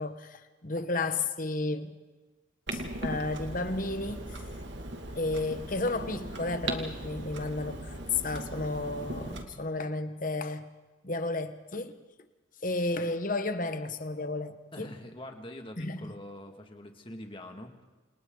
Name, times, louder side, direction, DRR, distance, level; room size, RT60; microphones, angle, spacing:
voice 1, 0.0-2.0 2.7-4.4 5.2-10.7 11.0-12.0 12.6-14.9 15.8-16.1, left 2 dB, 40° left, 1.3 m, -32 dB
Clock, 2.7-9.4, right 1 dB, 65° right, 2.5 m, -38 dB
voice 2, 14.7-17.8, left 1 dB, 25° left, 2.3 m, -44 dB
29.5 x 28.0 x 4.0 m
head